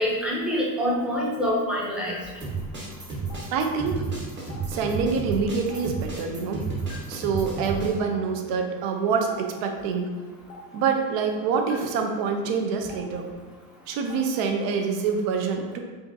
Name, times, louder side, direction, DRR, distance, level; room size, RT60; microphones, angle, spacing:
voice 1, 0.0-2.1, equal, ahead, -5 dB, 0.7 m, -25 dB
Stream, 0.9-1.0 2.1-2.2 3.3-3.4 4.5-4.6 5.7-5.8 6.9-7.0 8.1-8.2 9.3-9.4 10.5-10.6 11.7-11.8 12.9-13.0 14.1-14.2, left 6 dB, 75° left, 0.9 m, -44 dB
sound 1, 2.4-7.9, right 4 dB, 25° right, 1.1 m, -32 dB
voice 2, 3.5-4.0 4.7-6.7 7.1-10.1 10.7-13.3 13.9-15.8, right 5 dB, 55° right, 4 dB, 0.6 m, -26 dB
4.9 x 2.6 x 2.7 m, 1.3 s
supercardioid pair, 135°, 43 cm